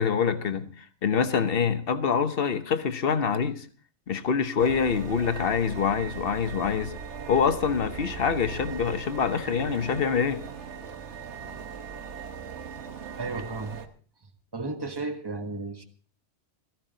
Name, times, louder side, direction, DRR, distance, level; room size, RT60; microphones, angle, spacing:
voice 1, 0.0-3.7 4.1-7.0 7.3-10.4, left 6 dB, 55° left, 1.2 m, -25 dB
sound 1, 4.6-13.9, right 6 dB, 70° right, 1.4 m, -39 dB
voice 2, 13.2-13.9 14.5-15.8, right 3 dB, 20° right, 1.3 m, -34 dB
16.0 x 14.5 x 4.0 m
omnidirectional pair, 1.2 m